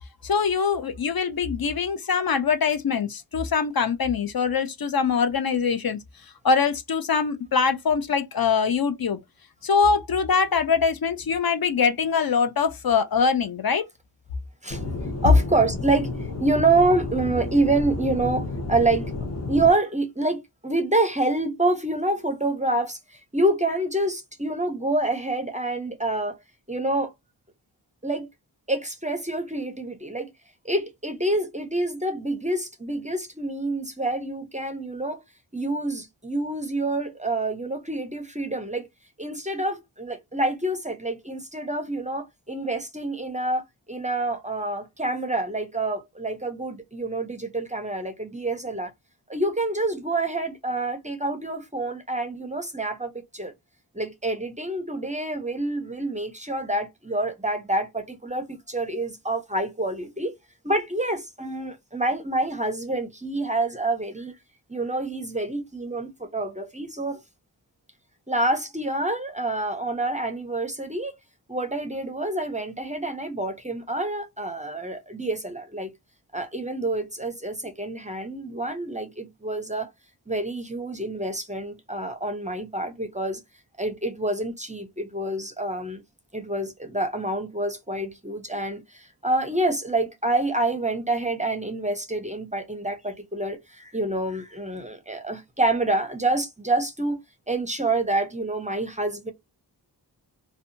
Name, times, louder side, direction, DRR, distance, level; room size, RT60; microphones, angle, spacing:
voice 1, 0.2-9.2 9.6-13.8, left 5 dB, 60° left, 0.5 m, -23 dB
Aircraft / Engine, 14.7-19.7, left 2 dB, 40° left, 0.9 m, -31 dB
voice 2, 15.2-19.1 19.5-26.4 26.7-27.1 28.0-28.3 28.7-30.3 30.6-35.2 35.5-38.9 39.2-48.9 49.3-53.5 53.9-60.4 60.6-64.3 64.7-67.2 68.3-71.2 71.5-75.9 76.3-79.9 80.3-83.4 83.8-86.0 86.3-97.2 97.5-99.3, right 2 dB, 20° right, 0.5 m, -27 dB
2.6 x 2.2 x 2.5 m
wide cardioid pair, 90°, 42 cm